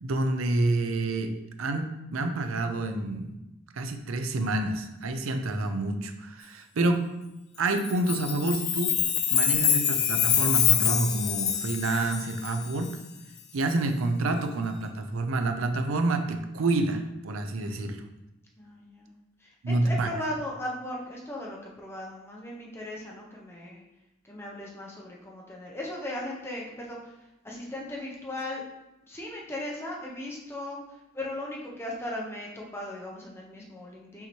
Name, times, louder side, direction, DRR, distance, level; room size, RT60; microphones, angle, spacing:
voice 1, 0.0-1.3 1.6-3.4 3.7-7.1 7.6-9.0 9.3-12.9 13.5-18.0 19.6-20.1, right 2 dB, 85° right, 6 dB, 0.5 m, -28 dB
Chime, 7.8-12.9, left 8 dB, 50° left, 0.4 m, -25 dB
voice 2, 18.6-19.1 19.4-23.8 24.2-28.6 29.1-34.3, left 1 dB, 10° left, -3 dB, 0.7 m, -37 dB
5.5 x 2.8 x 3.0 m, 0.94 s
head